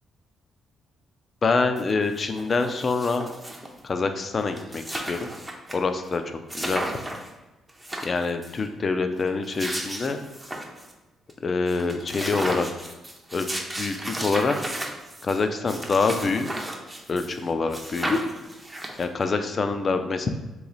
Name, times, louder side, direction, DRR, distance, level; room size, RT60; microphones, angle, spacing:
voice 1, 1.4-3.2 3.8-5.3 5.7-6.8 8.0-10.2 11.4-12.7 13.3-13.5 13.8-14.6 15.2-16.5 17.1-18.2 19.0-20.3, left 4 dB, 40° left, 7 dB, 0.4 m, -25 dB
sound 1, 1.8-1.9 2.1-3.8 4.2-4.3 4.5-5.7 6.1-6.2 6.5-7.3 7.7-8.6 9.3-10.9 11.3-11.4 11.7-17.4 17.7-19.2, right 1 dB, 10° right, 0.6 m, -34 dB
3.1 x 3.0 x 3.9 m, 1.1 s
cardioid pair, 90°, 0 cm